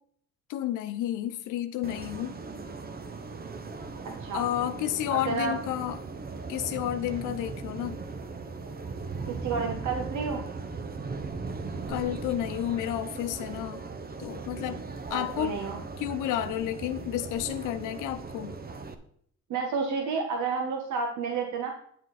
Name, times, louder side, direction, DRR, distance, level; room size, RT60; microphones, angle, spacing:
voice 1, 0.5-2.4 4.3-6.0 6.5-8.0 11.9-13.8 14.2-14.8 15.1-15.6 16.0-18.6, left 12 dB, 90° left, 10 dB, 0.7 m, -31 dB
sound 1, 1.8-18.9, right 4 dB, 30° right, 1.0 m, -38 dB
voice 2, 5.1-5.6 9.3-10.4 15.1-15.8 19.5-21.7, right 4 dB, 75° right, 3 dB, 1.3 m, -30 dB
9.4 x 7.3 x 4.1 m, 0.63 s
cardioid pair, 90°, 30 cm